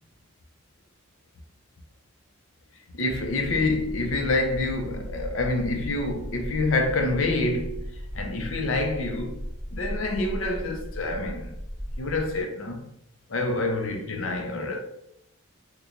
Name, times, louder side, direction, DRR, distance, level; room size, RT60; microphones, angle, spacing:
voice 1, 2.9-9.4 9.7-11.5 12.0-12.9 13.3-14.8, left 2 dB, 70° left, 0.6 m, -27 dB
sound 1, 3.1-12.4, equal, ahead, 0.8 m, -37 dB
3.0 x 2.3 x 3.8 m
head